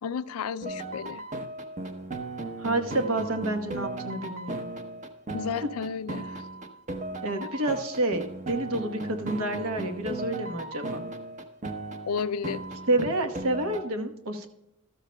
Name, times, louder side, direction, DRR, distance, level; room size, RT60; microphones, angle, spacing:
voice 1, 0.0-1.2 5.3-6.4 7.4-7.5 12.0-12.6, left 6 dB, 80° left, 15 dB, 0.4 m, -32 dB
sound 1, 0.6-13.8, right 2 dB, 35° right, 0.8 m, -36 dB
voice 2, 2.6-4.7 7.2-11.0 12.9-14.5, right 2 dB, 75° right, 6 dB, 1.2 m, -29 dB
14.0 x 13.0 x 2.2 m, 0.86 s
head